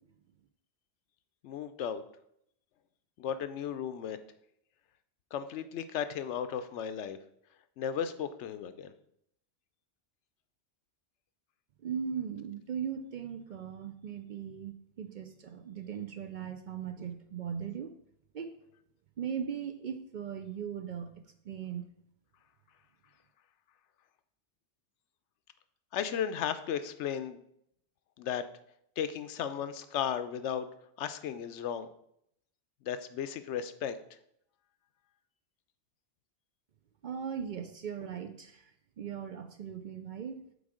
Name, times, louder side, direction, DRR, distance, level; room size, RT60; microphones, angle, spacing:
voice 1, 1.4-2.0 3.2-4.2 5.3-7.2 7.8-8.9 25.9-27.4 28.2-28.4 29.0-30.7 31.0-31.9 32.8-34.0, left 8 dB, 90° left, 11 dB, 0.9 m, -35 dB
voice 2, 11.8-17.9 18.3-18.5 19.2-21.9 37.0-38.7 39.0-40.4, right 7 dB, 55° right, 8 dB, 0.5 m, -38 dB
8.0 x 3.6 x 4.9 m, 0.73 s
omnidirectional pair, 1.2 m